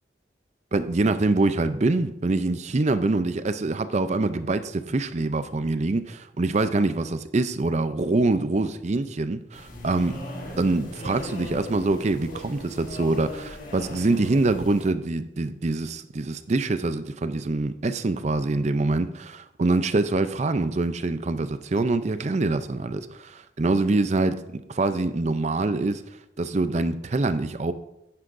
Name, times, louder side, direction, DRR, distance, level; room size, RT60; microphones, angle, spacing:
voice 1, 0.7-10.2 10.6-26.0 26.4-27.7, right 2 dB, 35° right, 11 dB, 0.5 m, -25 dB
sound 1, 9.5-14.9, left 1 dB, 45° left, 1.8 m, -38 dB
10.0 x 9.7 x 2.6 m, 0.85 s
head